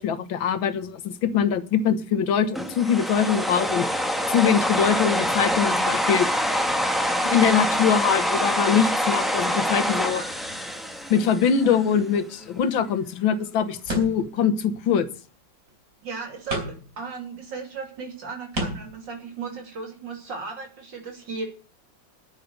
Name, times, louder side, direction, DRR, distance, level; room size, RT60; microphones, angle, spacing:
voice 1, 0.0-3.9 4.3-6.3 7.2-10.2 11.1-15.1, left 7 dB, 85° left, 11 dB, 1.9 m, -23 dB
sound 1, 2.5-11.8, equal, ahead, 1.1 m, -25 dB
sound 2, 11.6-12.5 13.9-14.4 15.7-15.8 16.5-16.9 17.8-17.9 18.5-19.0, right 1 dB, 45° right, 4.2 m, -32 dB
voice 2, 16.0-21.5, right 4 dB, 65° right, 3 dB, 3.5 m, -36 dB
9.6 x 8.8 x 8.1 m, 0.41 s
omnidirectional pair, 2.1 m